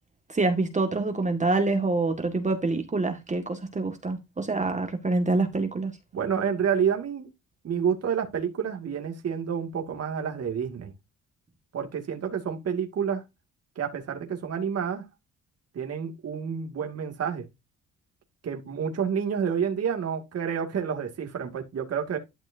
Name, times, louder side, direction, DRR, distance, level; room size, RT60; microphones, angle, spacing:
voice 1, 0.3-5.9, right 3 dB, 25° right, 1.9 m, -26 dB
voice 2, 6.1-7.3 7.6-10.9 11.7-13.2 13.8-15.0 15.7-17.4 18.4-22.2, right 7 dB, 55° right, 2.4 m, -29 dB
12.5 x 6.2 x 2.7 m
cardioid pair, 90°, 30 cm